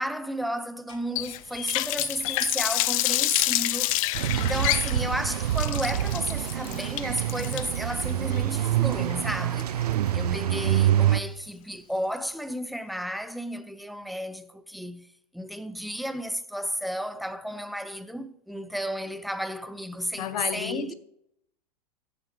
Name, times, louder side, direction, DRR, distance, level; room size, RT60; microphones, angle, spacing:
voice 1, 0.0-3.9 4.3-9.8 10.1-15.1 15.3-20.9, equal, ahead, 0.6 m, -33 dB
Clock, 0.9-1.0 1.6-1.7 2.3-2.5 3.1-3.2 3.8-3.9 4.5-4.7 5.3-5.5 6.0-6.1, left 3 dB, 30° left, 3.5 m, -48 dB
Water tap faucet, 1.2-10.1, left 18 dB, 60° left, 0.5 m, -28 dB
sound 1, 4.1-11.2, right 11 dB, 85° right, 0.5 m, -26 dB
voice 2, 20.2-20.9, left 10 dB, 75° left, 0.9 m, -31 dB
15.0 x 7.2 x 3.3 m
hypercardioid pair, 105°, 20 cm